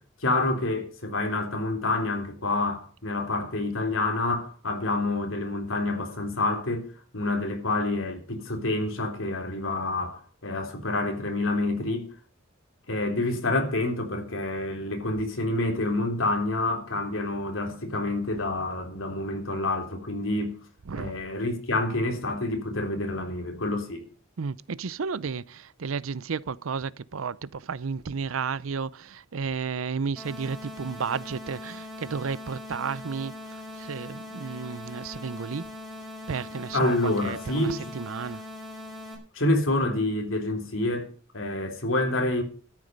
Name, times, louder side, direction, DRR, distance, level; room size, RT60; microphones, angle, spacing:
voice 1, 0.2-6.9 7.1-12.1 12.9-20.5 20.9-24.1 36.7-37.8 39.3-42.4, left 2 dB, 70° left, 3.5 m, -28 dB
voice 2, 20.9-21.2 24.4-33.3 33.8-35.6 36.3-36.9 37.2-38.4, right 5 dB, 80° right, 0.6 m, -32 dB
sound 1, 30.2-39.2, left 1 dB, ahead, 5.2 m, -41 dB
13.0 x 11.0 x 5.4 m
head